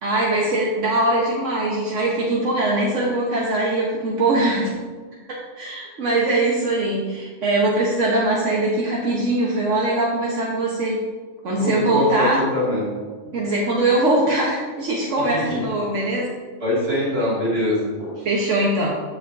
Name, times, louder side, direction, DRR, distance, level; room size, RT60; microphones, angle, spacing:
voice 1, 0.0-4.7 5.6-11.0 11.4-12.4 13.3-16.3 18.2-18.9, right 2 dB, 80° right, -4 dB, 1.4 m, -21 dB
voice 2, 11.6-12.3 12.5-12.9 15.3-15.6 16.6-18.1, left 1 dB, 55° right, -6 dB, 2.4 m, -23 dB
14.0 x 5.0 x 2.6 m, 1.5 s
omnidirectional pair, 1.3 m